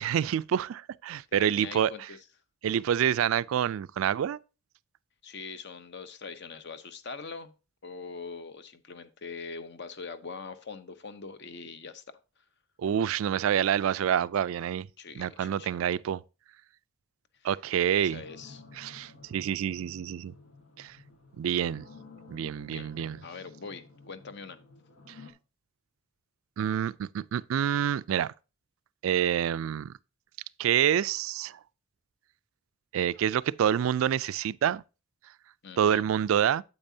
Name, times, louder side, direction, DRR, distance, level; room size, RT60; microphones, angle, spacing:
voice 1, 0.0-1.9 2.6-4.4 12.8-14.9 15.2-16.2 17.4-18.2 18.8-20.3 20.8-21.0 21.4-21.9 22.3-23.2 26.6-28.3 29.0-29.9 30.6-31.6 32.9-34.8 35.8-36.6, right 9 dB, 75° right, 0.3 m, -27 dB
voice 2, 1.3-2.2 5.2-7.5 7.8-12.2 15.0-15.7 17.3-17.5 17.9-18.6 22.7-24.6 35.6-36.1, left 4 dB, 55° left, 0.8 m, -43 dB
sound 1, 17.9-25.3, left 3 dB, 85° left, 1.5 m, -52 dB
8.7 x 8.2 x 2.7 m
head